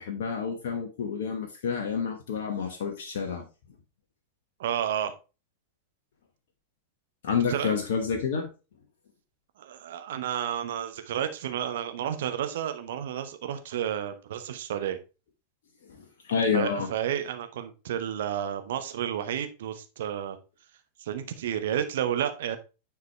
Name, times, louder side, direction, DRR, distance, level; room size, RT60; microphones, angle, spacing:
voice 1, 0.0-3.5 7.2-8.5 15.9-16.9, left 6 dB, 55° left, 4 dB, 1.1 m, -29 dB
voice 2, 4.6-5.1 7.5-7.8 9.6-15.0 16.5-20.4 21.0-22.6, right 10 dB, 60° right, 9 dB, 1.0 m, -31 dB
9.4 x 4.7 x 3.3 m, 0.30 s
figure-of-eight pair, 90°, 0 cm